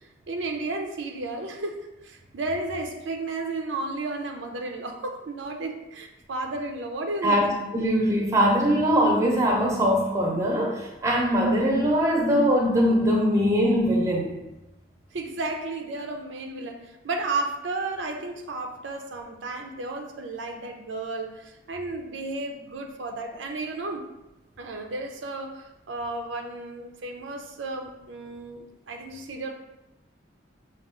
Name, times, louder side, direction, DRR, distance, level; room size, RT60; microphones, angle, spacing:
voice 1, 0.3-7.6 15.1-24.1 24.6-29.5, right 2 dB, 80° right, 3 dB, 0.5 m, -33 dB
voice 2, 7.2-14.3, equal, 15° right, -1 dB, 0.7 m, -22 dB
5.9 x 2.4 x 3.7 m, 0.96 s
head